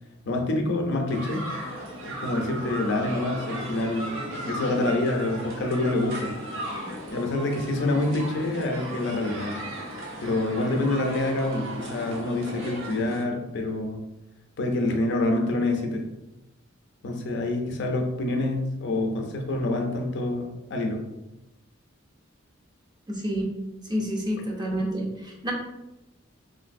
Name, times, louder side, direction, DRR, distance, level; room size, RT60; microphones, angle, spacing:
voice 1, 0.2-1.4 2.0-6.3 7.1-9.6 10.2-14.0 14.6-16.0 17.0-21.0, left 2 dB, 60° left, 2 dB, 0.5 m, -27 dB
sound 1, 1.1-13.2, right 1 dB, 80° right, 0.7 m, -36 dB
voice 2, 23.1-23.5 23.9-25.5, equal, 20° right, -1 dB, 0.5 m, -29 dB
3.1 x 2.5 x 2.5 m, 0.95 s
head